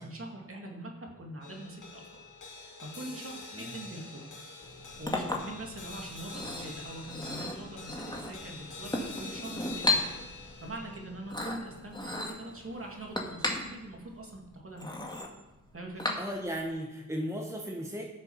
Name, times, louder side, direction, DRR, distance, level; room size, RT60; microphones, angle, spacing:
voice 1, 0.0-2.2 2.6-4.3 5.0-15.1 15.7-16.2, right 1 dB, 40° right, 1 dB, 2.4 m, -43 dB
sound 1, 1.4-13.9, left 3 dB, 65° left, 2.7 m, -47 dB
Chink clink, 4.6-16.7, left 2 dB, 15° left, 1.9 m, -36 dB
voice 2, 16.2-18.0, equal, 10° right, 1 dB, 1.2 m, -36 dB
12.0 x 6.8 x 5.6 m, 1.0 s
cardioid pair, 60°, 33 cm